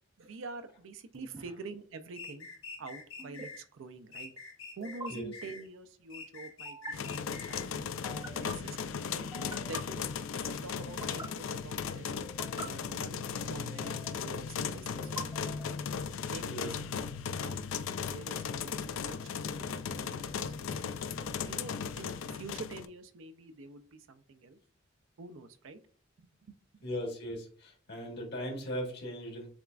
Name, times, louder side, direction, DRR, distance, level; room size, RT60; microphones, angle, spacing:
voice 1, 0.2-2.5 2.8-4.3 4.8-9.3 9.6-10.1 10.3-12.1 12.5-15.8 16.3-16.7 17.4-17.6 18.1-24.6 25.2-25.8 26.2-26.6, right 3 dB, 75° right, 10 dB, 0.5 m, -47 dB
sound 1, 1.1-1.4 3.2-3.5 4.8-5.1 6.7-6.9 8.0-8.5 9.3-9.8 10.8-11.3 12.2-12.7 13.7-14.3 15.0-15.8, right 2 dB, 15° right, 0.3 m, -45 dB
sound 2, 2.2-3.6 4.1-5.7 6.1-7.7, left 4 dB, 90° left, 1.2 m, -46 dB
sound 3, 6.9-22.9, left 6 dB, 70° left, 0.3 m, -37 dB
voice 2, 26.8-29.5, equal, 55° left, 0 dB, 1.4 m, -38 dB
7.0 x 2.4 x 2.3 m, 0.44 s
head